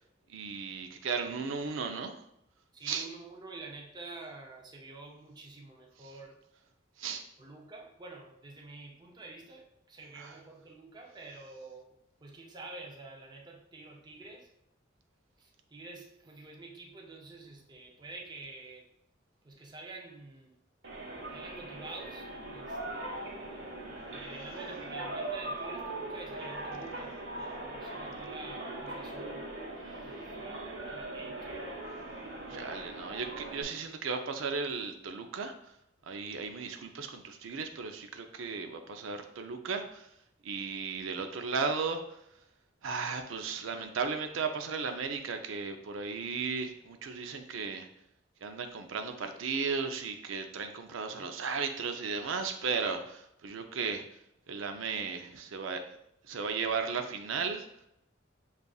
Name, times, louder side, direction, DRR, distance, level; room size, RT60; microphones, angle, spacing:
voice 1, 0.3-2.2 2.9-3.0 7.0-7.2 10.2-10.4 32.5-35.7 36.0-40.1 40.4-42.2 42.8-47.9 48.4-54.2 54.5-55.8 56.2-57.8, right 5 dB, 90° right, 6 dB, 0.5 m, -35 dB
voice 2, 2.7-6.4 7.4-14.5 15.4-18.9 19.4-20.6 21.3-23.3 24.1-29.5 29.8-31.8 32.5-32.6 51.2-51.3, right 3 dB, 20° right, 0 dB, 0.5 m, -48 dB
sound 1, 20.8-33.6, right 2 dB, 70° right, 1.2 m, -40 dB
6.7 x 2.4 x 2.3 m, 0.77 s
head